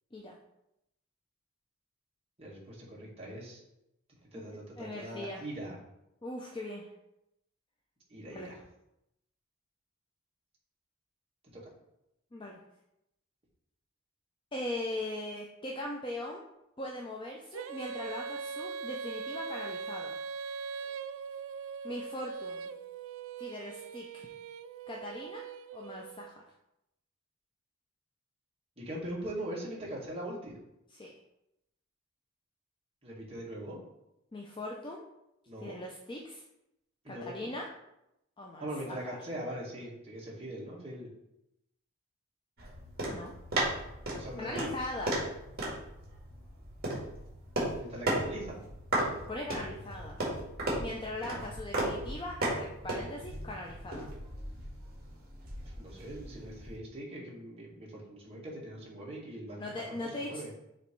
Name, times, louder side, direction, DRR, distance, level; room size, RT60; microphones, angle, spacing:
voice 1, 2.4-3.6 4.3-5.8 8.1-8.6 11.5-11.6 28.8-30.5 33.0-33.8 35.5-35.8 37.0-37.5 38.6-41.1 44.2-44.7 47.7-48.6 51.3-51.4 55.6-60.5, right 1 dB, 30° right, -5 dB, 1.9 m, -41 dB
voice 2, 4.3-5.4 6.2-6.9 8.3-8.5 12.3-12.6 14.5-16.4 16.8-20.1 21.8-22.7 23.4-24.3 24.9-25.4 25.7-26.4 31.0-31.1 34.3-35.0 35.6-36.4 37.1-37.7 38.4-39.2 43.1-43.3 44.4-45.2 49.3-50.2 50.8-54.1 59.6-60.4, left 1 dB, 25° left, -1 dB, 0.6 m, -40 dB
Female singing, 17.5-26.3, right 5 dB, 65° right, 0.3 m, -41 dB
sound 1, 42.6-56.8, right 1 dB, 50° right, 2.1 m, -36 dB
6.8 x 3.2 x 4.5 m, 0.86 s
head